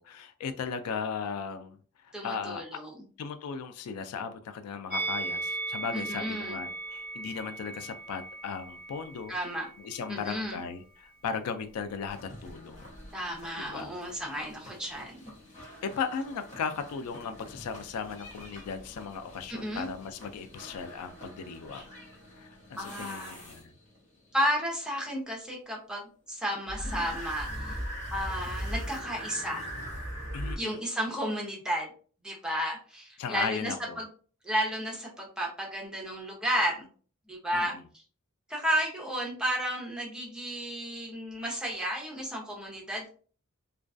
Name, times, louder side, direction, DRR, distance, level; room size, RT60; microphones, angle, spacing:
voice 1, 0.0-1.8 2.0-2.8 3.2-9.4 9.8-12.9 13.6-13.9 15.8-21.9 22.4-23.7 30.3-30.8 33.2-34.0 37.5-37.8, left 6 dB, 85° left, 9 dB, 0.3 m, -37 dB
voice 2, 2.1-2.9 5.9-6.6 9.3-9.7 10.1-10.6 13.1-15.2 19.5-19.9 22.8-23.4 24.3-27.8 28.1-29.7 30.6-31.9 32.2-34.1 34.4-36.9 37.3-37.8 38.5-43.1, equal, 5° right, -2 dB, 0.6 m, -32 dB
Musical instrument, 4.9-10.1 10.4-10.6, right 3 dB, 45° right, 0.6 m, -37 dB
sound 1, 12.1-24.0 26.7-30.6, equal, 30° left, 0.9 m, -41 dB
2.3 x 2.2 x 2.4 m, 0.42 s
head